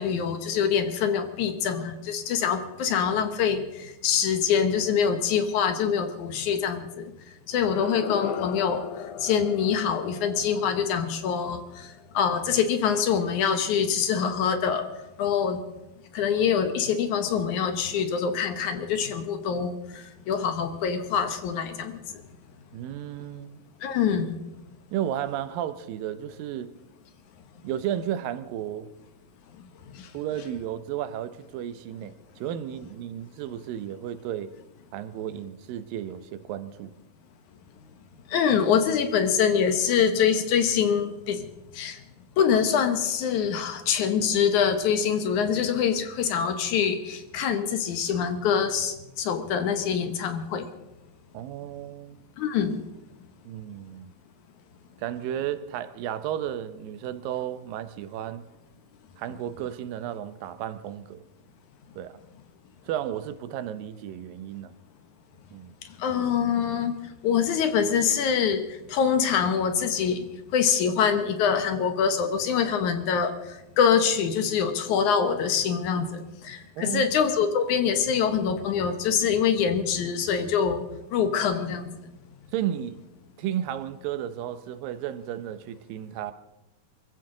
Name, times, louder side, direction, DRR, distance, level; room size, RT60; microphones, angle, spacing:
voice 1, 0.0-7.1 7.5-8.8 9.2-14.8 15.2-15.6 16.1-22.0 23.8-24.4 29.9-30.1 38.3-41.5 41.7-42.0 42.4-50.7 52.4-52.8 66.0-67.0 67.2-70.3 70.5-80.8 81.1-81.9, left 7 dB, 70° left, 2.4 m, -25 dB
sound 1, 7.5-12.5, left 8 dB, 90° left, 2.5 m, -38 dB
voice 2, 22.7-23.6 24.9-26.7 27.6-28.9 30.1-34.5 34.9-36.9 51.3-52.2 53.5-54.1 55.0-58.5 59.2-61.3 62.0-62.2 62.8-64.7 65.5-65.7 76.8-77.1 82.5-83.0 83.4-86.3, right 11 dB, 85° right, 2.5 m, -33 dB
23.5 x 15.0 x 3.8 m
omnidirectional pair, 3.9 m